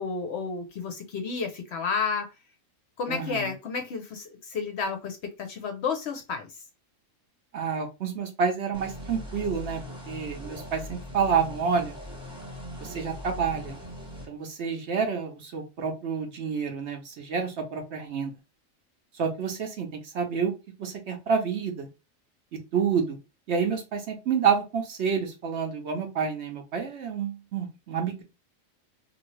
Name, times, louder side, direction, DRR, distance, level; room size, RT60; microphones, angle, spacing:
voice 1, 0.0-2.3 3.0-6.5, left 5 dB, 60° left, 0.8 m, -31 dB
voice 2, 3.1-3.5 7.5-9.8 10.1-12.0 12.8-13.8 14.3-18.3 19.2-19.9 20.1-20.5 20.8-21.9 22.7-23.2 23.5-28.2, right 6 dB, 60° right, 0.9 m, -28 dB
sound 1, 8.7-14.3, left 1 dB, 5° right, 0.9 m, -40 dB
2.7 x 2.6 x 3.0 m
omnidirectional pair, 1.4 m